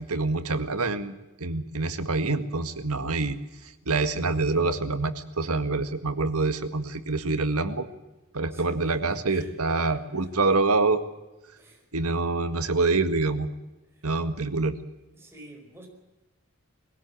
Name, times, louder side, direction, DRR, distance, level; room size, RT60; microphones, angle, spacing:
voice 1, 0.0-3.4 3.6-7.9 8.3-11.0 11.9-13.5 14.0-14.8, right 3 dB, 90° right, 9 dB, 1.9 m, -26 dB
voice 2, 8.5-10.3 11.6-11.9 13.9-14.1 15.1-15.9, right 1 dB, 10° right, 0 dB, 5.0 m, -50 dB
22.5 x 17.0 x 8.5 m, 1.0 s
head